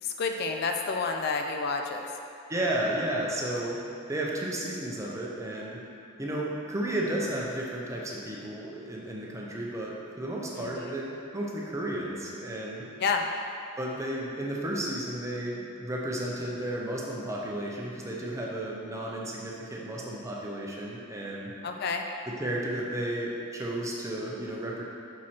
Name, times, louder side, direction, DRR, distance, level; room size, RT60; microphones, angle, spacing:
voice 1, 0.0-2.1 10.6-11.0 13.0-13.3 21.6-22.1, left 4 dB, 50° left, 4 dB, 0.3 m, -30 dB
voice 2, 2.5-3.8 4.1-5.8 6.2-12.9 13.8-21.5 22.3-24.8, right 1 dB, 15° right, -3 dB, 0.7 m, -33 dB
5.7 x 4.7 x 4.3 m, 2.7 s
head